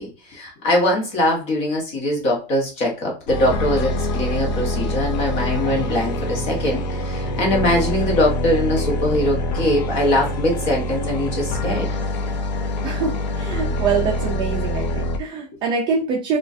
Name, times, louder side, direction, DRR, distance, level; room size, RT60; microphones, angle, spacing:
voice 1, 0.0-11.9, left 1 dB, 30° left, 0 dB, 1.1 m, -22 dB
sound 1, 3.3-15.2, left 1 dB, 85° left, 0.7 m, -25 dB
voice 2, 12.8-16.4, right 5 dB, 20° right, -2 dB, 0.5 m, -24 dB
4.4 x 2.5 x 2.5 m, 0.33 s
supercardioid pair, 175°, 21 cm